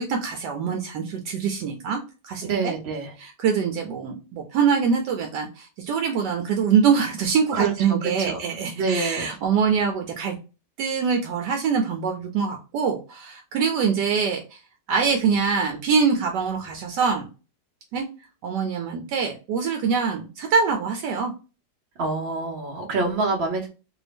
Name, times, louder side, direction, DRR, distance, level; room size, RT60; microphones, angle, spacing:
voice 1, 0.0-2.7 3.2-10.4 10.8-14.6 14.9-17.3 17.9-18.0 18.4-21.3, right 6 dB, 75° right, 3 dB, 1.2 m, -24 dB
voice 2, 2.4-3.1 7.5-8.4 8.7-9.3 22.0-23.7, right 4 dB, 55° right, 1 dB, 0.7 m, -26 dB
2.8 x 2.7 x 3.3 m, 0.32 s
omnidirectional pair, 1.9 m